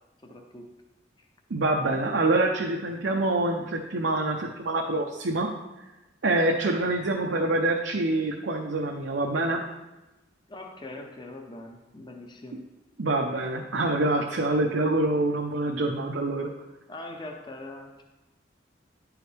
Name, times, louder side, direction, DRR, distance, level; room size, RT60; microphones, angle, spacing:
voice 1, 0.2-0.7 1.2-1.3 10.5-12.6 16.9-18.0, left 2 dB, 25° left, 3 dB, 0.7 m, -42 dB
voice 2, 1.5-5.5 6.2-9.6 13.0-16.5, right 2 dB, 80° right, 0 dB, 0.7 m, -26 dB
10.5 x 4.8 x 3.3 m, 1.0 s
head